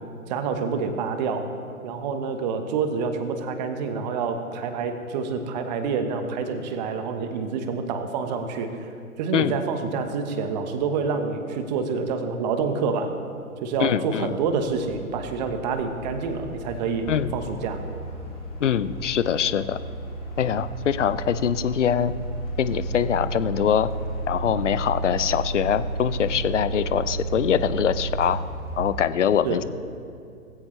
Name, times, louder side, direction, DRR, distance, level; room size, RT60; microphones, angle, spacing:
voice 1, 0.3-1.5 1.8-8.7 9.2-13.2 13.6-17.8 29.4-29.6, right 5 dB, 30° right, 7 dB, 1.2 m, -27 dB
voice 2, 13.8-14.3 17.1-17.3 18.6-19.8 20.4-22.1 22.6-23.9 24.3-28.4 28.8-29.6, left 9 dB, 55° left, 15 dB, 0.7 m, -23 dB
sound 1, 14.6-29.0, right 2 dB, 15° left, 2.0 m, -33 dB
19.0 x 16.0 x 3.3 m, 2.4 s
figure-of-eight pair, 125°, 44 cm